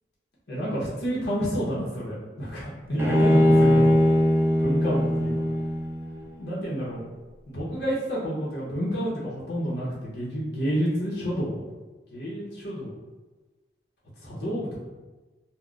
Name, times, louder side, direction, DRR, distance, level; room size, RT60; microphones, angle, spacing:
voice 1, 0.5-4.0 4.6-5.3 6.4-7.0 7.5-11.7 12.1-13.0 14.2-14.8, equal, 65° left, -7 dB, 0.7 m, -29 dB
Bowed string instrument, 3.0-6.3, equal, 15° right, 0.3 m, -20 dB
2.3 x 2.1 x 3.7 m, 1.2 s
head